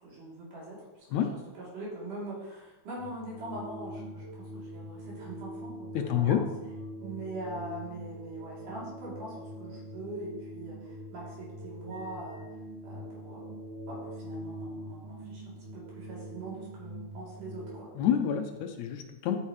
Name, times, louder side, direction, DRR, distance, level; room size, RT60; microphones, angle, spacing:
voice 1, 0.0-6.4 7.0-12.4 12.8-13.5 13.9-17.9, right 2 dB, 85° right, -6 dB, 4.8 m, -42 dB
sound 1, 2.9-17.8, equal, 40° right, 3.1 m, -43 dB
voice 2, 6.0-6.4 18.0-19.4, left 9 dB, 75° left, 6 dB, 1.9 m, -28 dB
11.0 x 8.8 x 3.2 m, 1.1 s
omnidirectional pair, 3.6 m